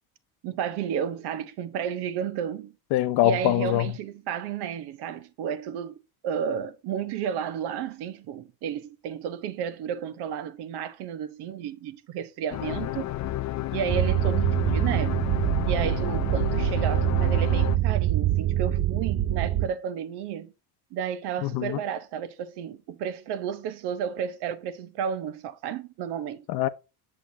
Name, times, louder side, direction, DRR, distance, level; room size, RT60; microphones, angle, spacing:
voice 1, 0.4-2.7 3.2-13.1 13.7-15.2 15.7-20.5 20.9-26.4, right 8 dB, 80° right, 1.0 m, -32 dB
voice 2, 2.9-3.9 21.4-21.8 26.5-26.7, left 15 dB, 75° left, 0.7 m, -23 dB
sound 1, 12.5-17.8, left 14 dB, 45° left, 0.5 m, -31 dB
sound 2, 13.9-19.7, right 13 dB, 35° right, 0.5 m, -24 dB
7.8 x 6.9 x 2.7 m
cardioid pair, 125°, 39 cm